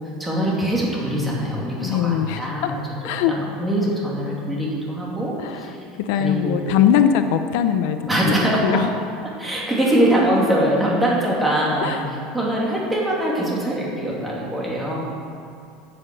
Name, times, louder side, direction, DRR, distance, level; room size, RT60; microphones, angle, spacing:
voice 1, 0.0-2.8 3.3-5.8 6.1-6.7 8.1-8.8 9.2-15.0, right 1 dB, 5° right, -5 dB, 2.5 m, -23 dB
voice 2, 1.8-2.7 3.0-3.3 5.4-8.3 8.6-8.9 11.8-12.0, left 9 dB, 60° left, 9 dB, 0.6 m, -21 dB
13.0 x 7.7 x 7.7 m, 2.5 s
cardioid pair, 170°, 0 cm